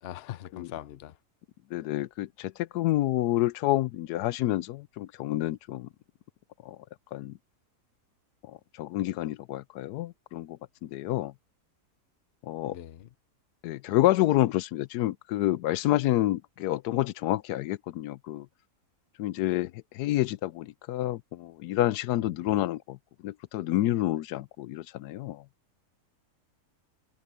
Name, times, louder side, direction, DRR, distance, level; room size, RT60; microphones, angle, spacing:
voice 1, 0.0-1.2 12.7-13.1, left 12 dB, 55° left, 0.7 m, -41 dB
voice 2, 1.7-5.9 6.7-6.8 7.1-7.3 8.5-11.3 12.4-12.7 13.6-18.5 19.2-23.0 23.2-25.4, left 15 dB, 85° left, 1.1 m, -28 dB
omnidirectional pair, 1.7 m